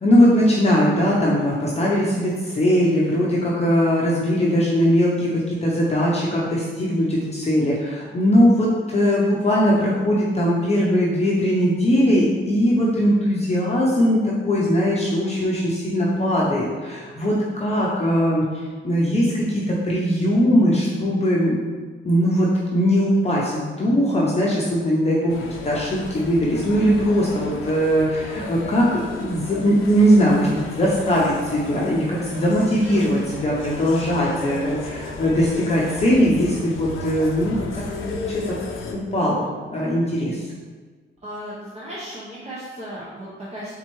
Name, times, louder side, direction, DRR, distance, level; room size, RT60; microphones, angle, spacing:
voice 1, 0.0-21.6 22.0-25.4 25.6-38.6 38.9-40.4, equal, 30° left, -5 dB, 0.7 m, -20 dB
sound 1, 25.3-38.9, left 3 dB, 90° left, 0.6 m, -34 dB
voice 2, 41.2-43.7, equal, 35° right, -8 dB, 0.9 m, -35 dB
4.3 x 3.6 x 3.0 m, 1.4 s
cardioid pair, 105°, 20 cm